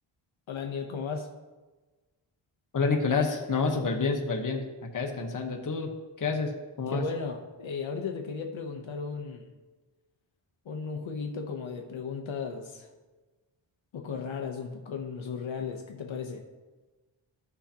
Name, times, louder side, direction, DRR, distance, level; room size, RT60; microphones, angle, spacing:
voice 1, 0.5-1.3 6.9-9.5 10.6-12.9 13.9-16.4, left 5 dB, 70° left, 2 dB, 0.8 m, -35 dB
voice 2, 2.7-5.9 6.2-7.0, left 4 dB, 40° left, 2 dB, 1.0 m, -28 dB
14.0 x 5.9 x 2.8 m, 1.2 s
wide cardioid pair, 175°, 48 cm